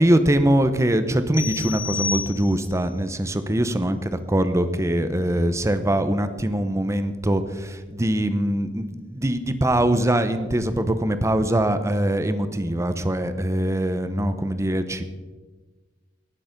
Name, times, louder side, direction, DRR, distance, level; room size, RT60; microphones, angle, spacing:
voice 1, 0.0-15.0, right 1 dB, 15° right, 10 dB, 0.8 m, -22 dB
sound 1, 1.3-2.9, left 5 dB, 25° left, 1.2 m, -30 dB
18.0 x 6.8 x 5.2 m, 1.4 s
head